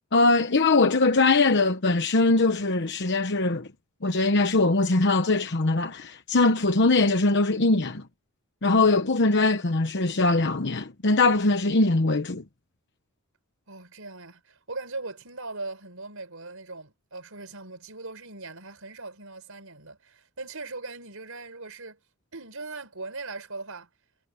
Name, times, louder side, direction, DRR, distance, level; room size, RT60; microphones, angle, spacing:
voice 1, 0.1-3.7 4.0-8.0 8.6-12.4, left 3 dB, 55° left, 1.1 m, -22 dB
voice 2, 13.7-22.0 22.3-23.9, right 3 dB, 70° right, 5.6 m, -39 dB
head